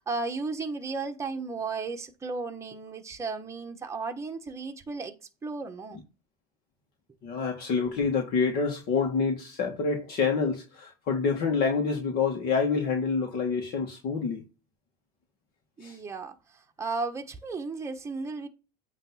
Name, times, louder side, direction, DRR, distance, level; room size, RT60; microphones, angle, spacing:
voice 1, 0.0-5.1 5.4-6.0 15.8-18.5, right 4 dB, 15° right, 1.2 m, -34 dB
voice 2, 7.2-14.4 15.8-16.0, left 5 dB, 50° left, 2.0 m, -27 dB
8.9 x 3.2 x 5.7 m
supercardioid pair, 130°, 21 cm